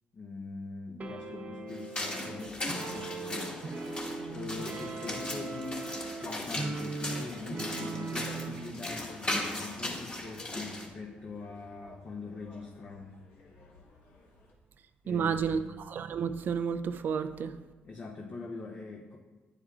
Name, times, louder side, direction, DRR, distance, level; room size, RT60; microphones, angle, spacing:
voice 1, 0.1-3.1 4.3-13.1 15.0-15.7 17.8-19.2, left 3 dB, 50° left, 0 dB, 0.8 m, -42 dB
sound 1, 1.0-8.7, right 3 dB, 45° right, 0.8 m, -39 dB
sound 2, 1.7-10.9, left 1 dB, 30° left, 1.6 m, -38 dB
sound 3, 2.3-14.5, left 2 dB, 75° left, 1.2 m, -55 dB
voice 2, 15.1-17.5, right 6 dB, 60° right, 9 dB, 0.3 m, -31 dB
9.7 x 4.9 x 2.4 m, 1.2 s
supercardioid pair, 60°, 4 cm